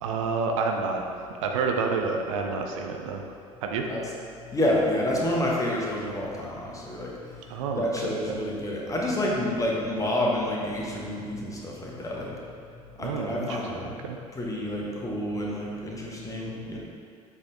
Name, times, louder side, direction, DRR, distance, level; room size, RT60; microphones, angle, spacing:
voice 1, 0.0-1.0 1.4-3.2 3.6-3.9 7.5-7.9 13.0-13.6 14.0-14.2, right 4 dB, 65° right, 2 dB, 0.5 m, -28 dB
voice 2, 4.5-7.1 7.8-12.3 13.0-13.9 14.3-16.8, left 1 dB, 20° left, -3 dB, 1.3 m, -28 dB
7.2 x 4.2 x 3.8 m, 2.4 s
figure-of-eight pair, 60°, 18 cm